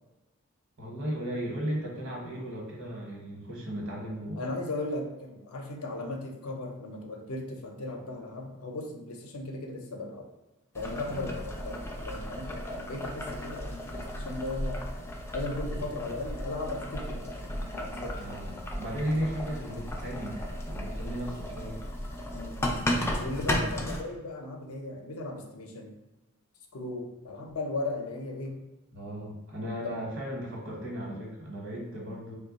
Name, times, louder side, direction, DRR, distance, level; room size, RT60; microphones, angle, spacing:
voice 1, 0.8-4.6 11.1-11.3 15.8-15.9 18.2-21.8 28.9-32.3, equal, 60° right, -2 dB, 1.1 m, -36 dB
voice 2, 4.4-10.2 10.7-14.9 15.3-18.2 22.3-22.6 23.2-25.9 26.7-28.6 29.8-30.1, left 2 dB, 75° left, 2 dB, 0.6 m, -37 dB
Boiling, 10.7-24.0, equal, 10° left, 0.3 m, -35 dB
3.0 x 2.2 x 3.9 m, 1.0 s
head